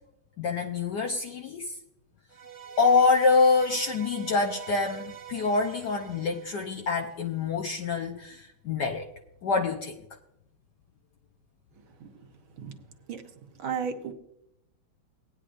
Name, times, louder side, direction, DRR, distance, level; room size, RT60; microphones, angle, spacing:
voice 1, 0.4-1.8 2.8-9.1 9.4-9.9, left 4 dB, 65° left, 1 dB, 1.2 m, -26 dB
sound 1, 2.3-7.5, right 9 dB, 50° right, 1.0 m, -44 dB
voice 2, 13.6-14.1, right 6 dB, 75° right, 5 dB, 1.9 m, -33 dB
18.0 x 9.8 x 2.5 m, 0.84 s
omnidirectional pair, 2.2 m